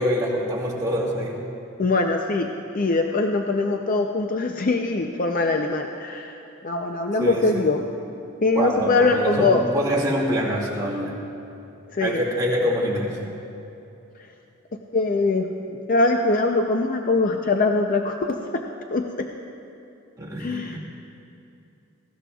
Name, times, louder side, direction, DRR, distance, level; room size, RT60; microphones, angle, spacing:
voice 1, 0.0-1.4 7.2-7.7 8.5-11.2 12.0-13.4 20.2-20.8, equal, 20° right, -5 dB, 2.1 m, -25 dB
voice 2, 1.8-7.8 8.4-9.6 11.9-12.2 14.7-18.6 18.9-19.3 20.4-20.8, left 3 dB, 40° left, 4 dB, 0.5 m, -23 dB
19.0 x 16.5 x 2.3 m, 2.8 s
head